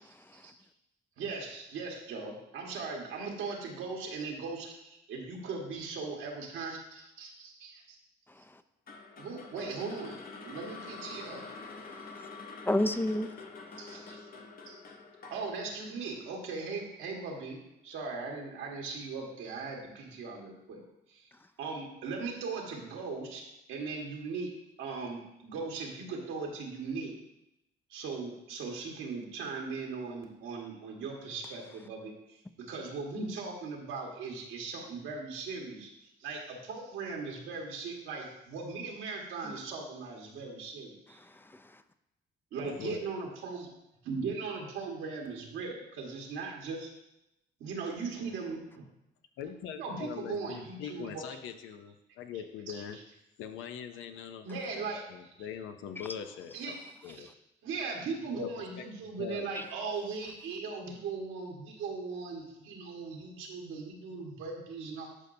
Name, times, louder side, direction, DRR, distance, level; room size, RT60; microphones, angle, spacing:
voice 1, 1.2-8.0 9.2-10.2 10.4-11.5 13.8-14.2 14.7-14.8 15.3-17.6 17.8-20.8 21.1-21.3 21.6-24.5 24.8-27.1 27.9-35.9 36.2-41.2 42.5-43.7 44.0-46.9 47.6-48.8 49.8-51.2 52.7-53.0 54.4-55.1 56.5-56.8 57.0-57.3 57.6-65.1, right 4 dB, 90° right, 1.6 m, -39 dB
voice 2, 8.3-8.6 11.8-12.3 12.7-14.1 39.4-39.6 41.1-41.8 59.5-59.6, left 1 dB, 10° left, 0.4 m, -34 dB
sound 1, 8.9-17.0, left 4 dB, 45° left, 0.8 m, -47 dB
voice 3, 49.4-53.0 53.4-54.5 55.1-56.8 57.0-57.3 58.4-59.5, left 8 dB, 90° left, 0.6 m, -42 dB
11.0 x 5.3 x 2.7 m
cardioid pair, 90°, 20 cm